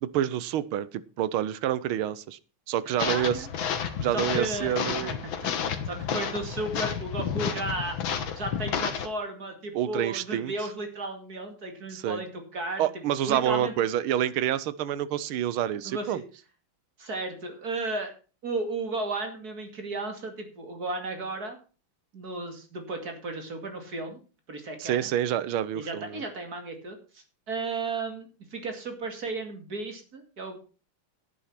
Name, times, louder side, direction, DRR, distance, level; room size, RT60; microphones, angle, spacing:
voice 1, 0.0-2.4 2.7-3.4 4.0-5.1 9.7-10.5 11.9-12.2 12.8-16.2 24.8-26.2, right 11 dB, 80° right, 17 dB, 1.6 m, -28 dB
sound 1, 3.0-9.1, left 7 dB, 70° left, 2.0 m, -31 dB
voice 2, 3.0-3.5 4.1-8.0 8.3-12.9 13.3-13.7 15.8-16.2 17.0-18.1 18.4-21.6 22.1-24.2 24.5-25.1 25.7-30.6, right 2 dB, 45° right, 5 dB, 2.8 m, -34 dB
11.0 x 9.3 x 5.8 m, 0.35 s
omnidirectional pair, 2.3 m